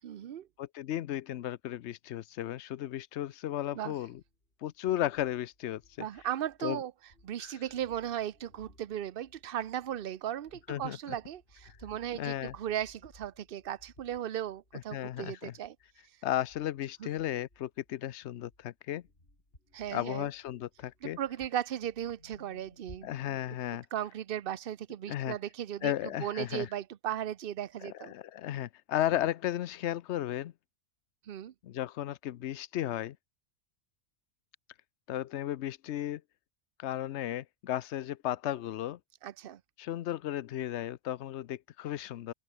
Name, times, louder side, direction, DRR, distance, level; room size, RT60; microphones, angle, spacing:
voice 1, 0.0-0.5 3.7-4.0 6.0-6.9 7.2-15.8 17.0-17.1 19.7-20.3 21.0-23.4 23.9-25.9 26.2-28.1 31.3-31.5 39.2-39.6, right 10 dB, 60° right, 0.9 m, -37 dB
voice 2, 0.6-4.2 4.6-6.1 6.6-6.8 7.4-7.5 10.7-11.2 12.2-12.5 14.9-15.5 16.2-19.0 19.9-21.2 23.0-23.8 25.1-25.3 25.8-26.7 28.0-30.5 31.6-33.2 35.1-36.2 36.8-39.0 39.8-42.3, left 12 dB, 80° left, 0.9 m, -34 dB
sound 1, 4.1-4.6 4.9-6.7 7.0-18.1 18.3-23.6, left 1 dB, 55° left, 7.2 m, -61 dB
open air
omnidirectional pair, 1.1 m